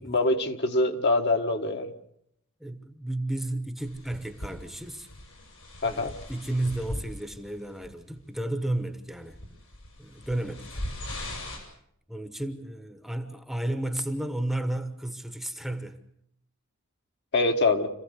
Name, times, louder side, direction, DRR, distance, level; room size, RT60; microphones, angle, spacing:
voice 1, 0.0-1.9 5.8-6.1 17.3-17.9, left 2 dB, 55° left, 4 dB, 1.6 m, -24 dB
voice 2, 2.6-5.1 5.8-9.4 10.0-10.8 11.4-11.7 12.1-16.0, right 1 dB, ahead, 8 dB, 1.1 m, -33 dB
sound 1, 3.8-7.5 7.8-8.2 8.7-8.8 9.3-11.6, left 1 dB, 85° left, 7.1 m, -39 dB
26.5 x 15.5 x 8.2 m, 0.73 s
head